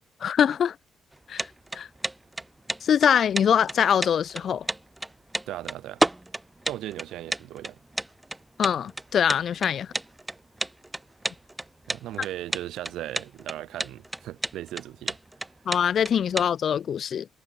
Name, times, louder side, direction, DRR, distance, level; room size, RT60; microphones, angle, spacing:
voice 1, 0.2-0.8 1.3-1.5 1.7-1.9 2.8-4.7 8.6-9.9 15.7-17.3, left 8 dB, 60° left, 0.6 m, -23 dB
sound 1, 1.1-16.5, right 1 dB, 10° right, 2.1 m, -31 dB
voice 2, 5.5-6.0 6.7-7.8 11.9-15.2, right 13 dB, 85° right, 3.7 m, -37 dB
cardioid pair, 90°, 0 cm